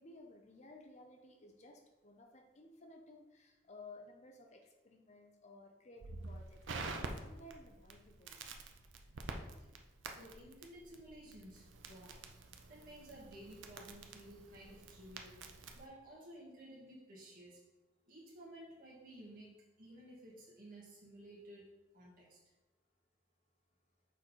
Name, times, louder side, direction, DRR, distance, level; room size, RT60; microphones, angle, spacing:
voice 1, 0.0-8.6, left 2 dB, 35° left, 3 dB, 0.6 m, -57 dB
Crackle, 6.0-15.9, right 3 dB, 70° right, 0.6 m, -48 dB
voice 2, 10.1-12.2 12.7-15.4 15.7-17.6 18.1-21.6 21.9-22.4, right 1 dB, 45° right, -5 dB, 2.0 m, -54 dB
6.3 x 3.9 x 4.4 m, 1.1 s
head